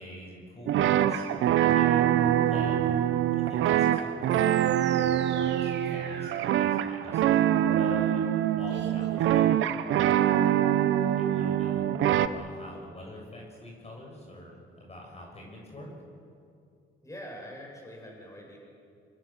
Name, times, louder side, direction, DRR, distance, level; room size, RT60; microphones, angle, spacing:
voice 1, 0.0-2.9 3.3-4.6 4.9-8.3 8.6-9.6 11.2-15.9, left 1 dB, 30° left, 0 dB, 7.3 m, -45 dB
sound 1, 0.7-12.3, right 11 dB, 80° right, 1.0 m, -24 dB
sound 2, 4.3-10.0, right 4 dB, 60° right, 3.3 m, -42 dB
voice 2, 10.5-10.8 17.0-18.6, equal, 15° left, 0 dB, 7.3 m, -44 dB
25.5 x 25.0 x 7.5 m, 2.4 s
cardioid pair, 90°, 20 cm